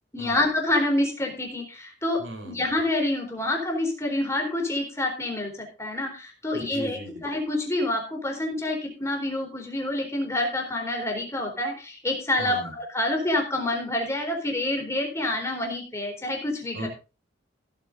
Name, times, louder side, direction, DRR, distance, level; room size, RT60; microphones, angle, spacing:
voice 1, 0.1-16.9, left 1 dB, 15° left, 1 dB, 4.1 m, -27 dB
voice 2, 2.2-2.6 6.5-7.2 12.4-12.7 16.7-16.9, equal, 80° right, 5 dB, 4.2 m, -37 dB
15.5 x 9.1 x 3.9 m, 0.32 s
head